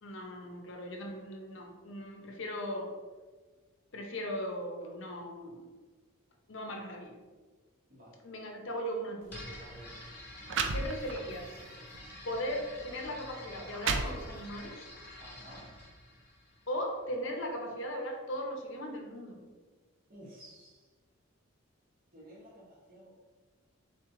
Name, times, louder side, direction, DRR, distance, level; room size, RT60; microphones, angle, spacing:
voice 1, 0.0-2.9 3.9-5.7 6.5-7.2 8.2-9.4 10.7-11.5 12.2-14.9 16.7-19.4, equal, 55° left, 2 dB, 0.7 m, -38 dB
sound 1, 9.2-9.4 10.1-10.2 10.5-11.4 11.9-12.1 12.9-13.0 13.5-14.6, right 4 dB, 55° right, 0.4 m, -34 dB
sound 2, 9.3-17.1, left 1 dB, 10° left, 1.2 m, -49 dB
voice 2, 9.5-10.0 15.2-15.7 20.1-20.9 22.1-23.1, right 1 dB, 40° right, -3 dB, 1.0 m, -53 dB
3.9 x 3.1 x 3.7 m, 1.4 s
head